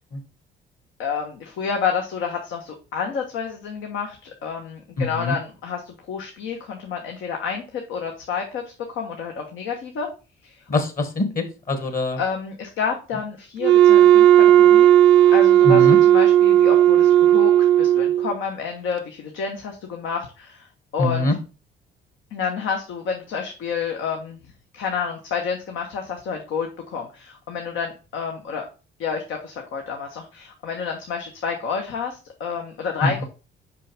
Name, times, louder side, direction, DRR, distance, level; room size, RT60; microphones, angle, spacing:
voice 1, 1.0-10.1 10.4-10.6 12.2-15.0 15.3-20.7 20.9-21.3 22.3-24.4 24.7-28.7 29.0-33.2, left 6 dB, 85° left, 2 dB, 1.2 m, -29 dB
voice 2, 5.0-5.4 10.7-12.2 15.7-16.0 21.0-21.3 33.0-33.2, left 2 dB, 45° left, 7 dB, 1.7 m, -23 dB
Wind instrument woodwind instrument, 13.6-18.3, right 11 dB, 70° right, 0.5 m, -14 dB
5.4 x 5.3 x 3.5 m, 0.32 s
cardioid pair, 90°, 20 cm